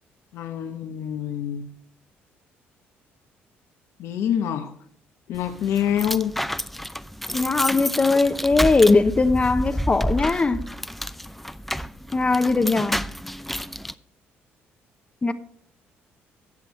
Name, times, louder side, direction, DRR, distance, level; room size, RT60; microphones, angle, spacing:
voice 1, 0.3-1.7 4.0-4.8 5.3-6.3, left 9 dB, 75° left, 0.9 m, -26 dB
sound 1, 5.3-13.9, equal, ahead, 0.5 m, -30 dB
voice 2, 7.3-10.6 12.1-13.0 15.2-15.3, left 3 dB, 25° left, 0.9 m, -20 dB
14.5 x 8.3 x 3.1 m
supercardioid pair, 70°, 5 cm